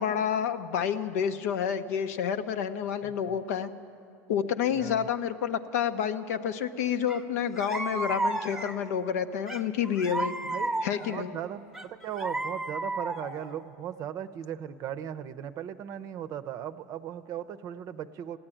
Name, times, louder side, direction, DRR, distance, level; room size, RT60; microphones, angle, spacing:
voice 1, 0.0-3.7 4.3-10.3 10.8-11.3, left 8 dB, 80° left, 9 dB, 0.8 m, -29 dB
voice 2, 3.0-3.4 4.8-5.1 10.5-18.4, right 10 dB, 45° right, 11 dB, 0.6 m, -38 dB
sound 1, 7.1-7.2 7.5-8.9 9.5-11.2 11.7-13.5, right 2 dB, 5° right, 0.9 m, -33 dB
16.0 x 8.8 x 10.0 m, 2.4 s
supercardioid pair, 110°, 8 cm